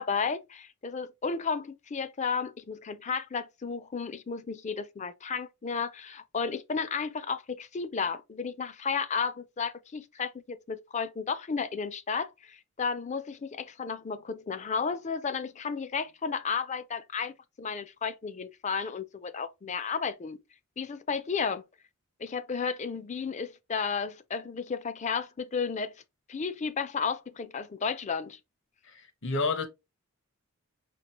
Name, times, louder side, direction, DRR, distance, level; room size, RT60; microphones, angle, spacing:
voice 1, 0.0-20.4 20.8-21.6 22.2-26.0 26.3-28.4, left 5 dB, 30° left, 0.4 m, -33 dB
voice 2, 28.9-29.7, left 3 dB, 55° left, 0.9 m, -30 dB
5.7 x 2.9 x 2.9 m
head